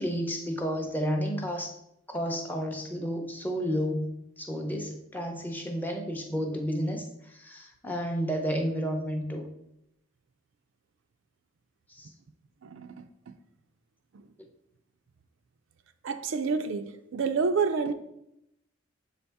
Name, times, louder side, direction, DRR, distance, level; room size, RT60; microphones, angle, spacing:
voice 1, 0.0-1.8 2.1-9.5 11.9-12.1, equal, 10° left, 3 dB, 0.6 m, -31 dB
voice 2, 12.6-13.4 14.1-14.2 16.0-17.9, right 5 dB, 65° right, 9 dB, 0.4 m, -29 dB
6.8 x 4.1 x 3.4 m, 0.80 s
head